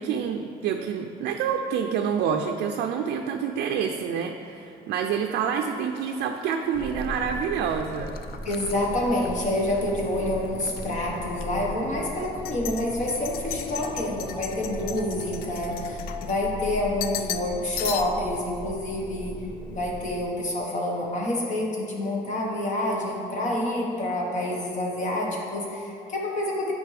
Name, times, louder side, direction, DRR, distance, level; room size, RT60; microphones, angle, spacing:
voice 1, 0.0-8.2, right 7 dB, 75° right, 4 dB, 0.4 m, -27 dB
sound 1, 6.0-9.9 10.2-10.9 11.4-11.5 12.2-16.6 17.0-17.5 17.8-18.4, left 10 dB, 65° left, 0.4 m, -38 dB
sound 2, 6.7-20.3, equal, 25° left, 1.2 m, -38 dB
voice 2, 8.4-26.7, left 1 dB, 45° left, -2 dB, 1.4 m, -28 dB
9.5 x 5.2 x 3.4 m, 2.6 s
cardioid pair, 110°, 17 cm